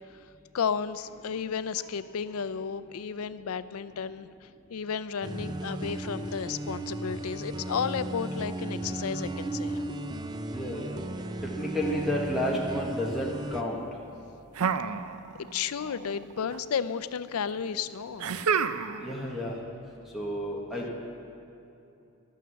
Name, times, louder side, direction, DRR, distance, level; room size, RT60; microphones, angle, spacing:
voice 1, 0.5-9.8 15.5-18.3, left 6 dB, 75° left, 14 dB, 0.4 m, -33 dB
sound 1, 5.2-13.6, right 1 dB, 20° right, 0.5 m, -35 dB
voice 2, 10.5-11.0 11.4-13.8 19.0-19.6 20.1-20.9, equal, ahead, -3 dB, 1.3 m, -31 dB
sound 2, 14.5-15.6 15.8-16.6 18.2-19.1, right 6 dB, 85° right, 0.5 m, -29 dB
12.5 x 9.3 x 6.9 m, 2.7 s
head